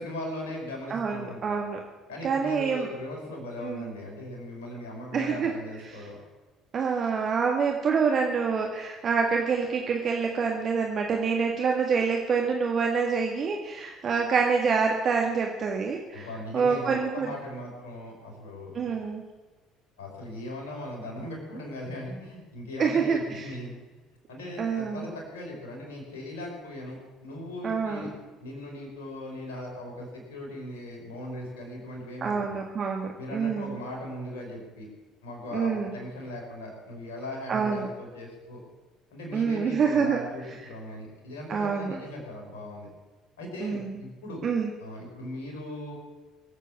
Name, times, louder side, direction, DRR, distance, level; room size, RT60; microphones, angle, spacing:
voice 1, 0.0-1.5 2.1-6.2 16.1-18.9 20.0-28.1 28.4-32.6 33.2-34.9 35.2-38.6 39.1-42.9 43.4-44.4 44.8-45.9, left 1 dB, 70° left, -1 dB, 5.4 m, -39 dB
voice 2, 0.9-1.8 2.2-2.9 3.6-3.9 5.1-5.5 5.9-6.0 6.7-16.3 16.5-17.3 18.7-19.2 22.8-23.5 24.6-25.1 27.6-28.1 32.2-33.8 35.5-35.9 37.5-37.9 39.3-40.2 41.5-41.9 43.6-44.0 44.4-44.7, right 5 dB, 40° right, 1 dB, 1.8 m, -26 dB
24.0 x 8.2 x 7.3 m, 1.2 s
figure-of-eight pair, 55°, 0 cm